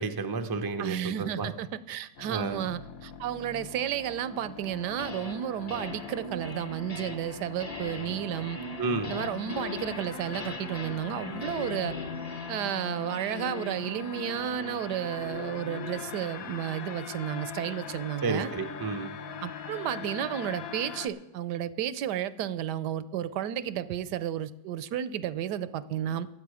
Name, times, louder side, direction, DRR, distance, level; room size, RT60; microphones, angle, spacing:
voice 1, 0.0-1.5 2.3-2.6 8.8-9.1 18.2-19.1, right 4 dB, 35° right, 6 dB, 0.3 m, -31 dB
voice 2, 0.8-8.6 9.1-12.0 12.5-18.5 19.4-26.3, right 10 dB, 75° right, 15 dB, 1.1 m, -32 dB
sound 1, 2.2-21.1, left 7 dB, 60° left, 1.2 m, -41 dB
sound 2, 4.7-5.4 5.7-16.1, left 3 dB, 25° left, 1.0 m, -41 dB
22.0 x 7.8 x 4.9 m, 0.92 s
omnidirectional pair, 1.9 m